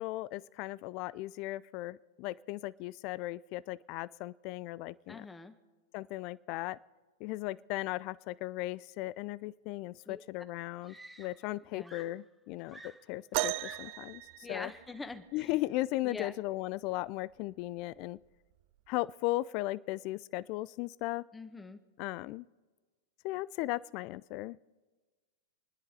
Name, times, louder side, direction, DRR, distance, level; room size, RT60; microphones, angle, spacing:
voice 1, 0.0-5.2 5.9-6.8 7.2-12.8 13.1-14.7 15.3-18.2 18.9-21.2 22.0-22.5 23.2-24.7, left 18 dB, 50° left, 18 dB, 0.4 m, -37 dB
voice 2, 5.1-5.5 10.0-10.2 11.7-11.9 14.4-15.6 16.0-16.3 21.3-21.8, left 3 dB, 10° left, 7 dB, 1.5 m, -44 dB
Screaming, 10.0-10.1 10.8-11.6 11.8-14.1 15.1-15.4, right 1 dB, 5° right, 1.2 m, -53 dB
sound 1, 13.3-15.2 16.9-17.0 17.8-18.0 18.9-19.0, right 18 dB, 55° right, 0.4 m, -36 dB
29.0 x 10.0 x 4.2 m, 1.3 s
hypercardioid pair, 110°, 0 cm